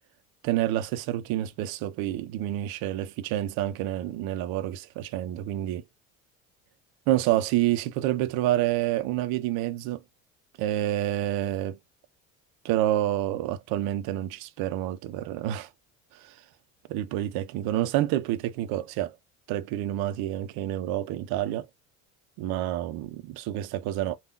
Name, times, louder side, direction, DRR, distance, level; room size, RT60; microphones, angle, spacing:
voice 1, 0.4-5.8 7.1-10.0 10.6-11.8 12.6-15.7 16.1-16.4 16.9-19.2 19.5-21.7 22.4-24.2, right 13 dB, 70° right, 0.6 m, -28 dB
3.4 x 2.3 x 2.3 m
supercardioid pair, 85°, 38 cm